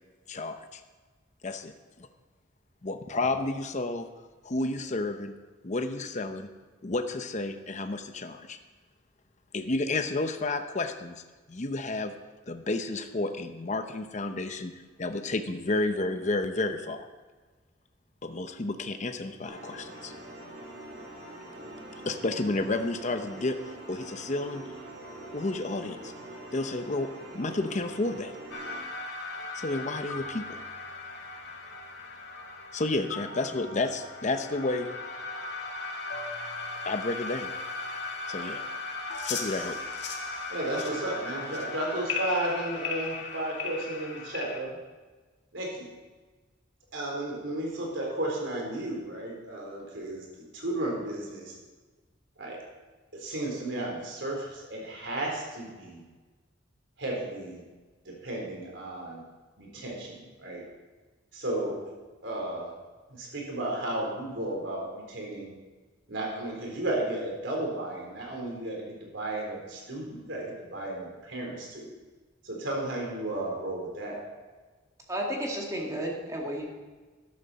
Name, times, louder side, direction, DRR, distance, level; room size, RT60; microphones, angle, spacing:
voice 1, 0.3-0.8 1.4-1.7 2.0-2.1 2.8-4.1 4.4-5.3 5.6-6.5 6.8-8.6 9.5-11.2 11.5-12.1 12.5-14.7 15.0-17.0 18.2-20.1 22.1-24.6 25.3-26.1 26.5-27.1 27.3-28.3 29.5-30.6 32.7-34.9 36.8-37.5 38.3-38.6 39.3-39.8, left 2 dB, 40° left, 7 dB, 0.8 m, -31 dB
sound 1, 19.4-28.8, right 1 dB, 55° right, 4.7 m, -44 dB
sound 2, 28.5-44.6, left 3 dB, 65° left, 2.2 m, -37 dB
voice 2, 40.5-44.8 45.5-45.9 46.9-51.5 52.4-52.6 53.1-56.0 57.0-57.6 58.1-59.2 59.6-60.7 61.3-61.8 62.2-62.7 63.1-65.5 66.1-71.9 72.4-74.2, right 1 dB, 75° right, -1 dB, 3.7 m, -33 dB
voice 3, 75.1-76.7, equal, 20° right, -1 dB, 2.2 m, -32 dB
13.5 x 12.0 x 4.2 m, 1.3 s
head